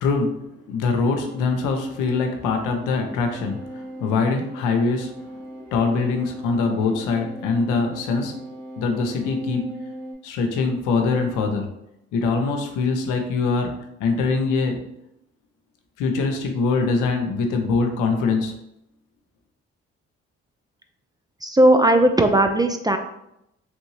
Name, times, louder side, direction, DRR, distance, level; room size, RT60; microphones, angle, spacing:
voice 1, 0.0-5.1 5.7-8.4 8.8-9.8 10.2-11.7 12.1-13.7 14.0-14.8 16.0-18.5, left 4 dB, 80° left, 4 dB, 0.6 m, -23 dB
sound 1, 1.3-10.1, equal, 70° right, 1.2 m, -39 dB
voice 2, 21.4-23.0, right 1 dB, 15° right, 6 dB, 0.3 m, -17 dB
3.1 x 2.7 x 3.0 m, 0.81 s
hypercardioid pair, 50°, 31 cm